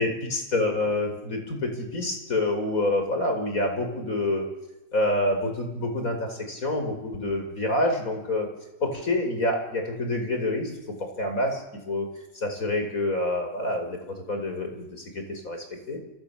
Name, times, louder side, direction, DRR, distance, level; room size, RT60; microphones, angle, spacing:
voice 1, 0.0-4.5 4.9-8.5 8.8-10.7 11.0-12.1 12.4-16.0, left 2 dB, 70° left, 5 dB, 5.8 m, -27 dB
29.0 x 26.0 x 7.3 m, 0.97 s
omnidirectional pair, 1.5 m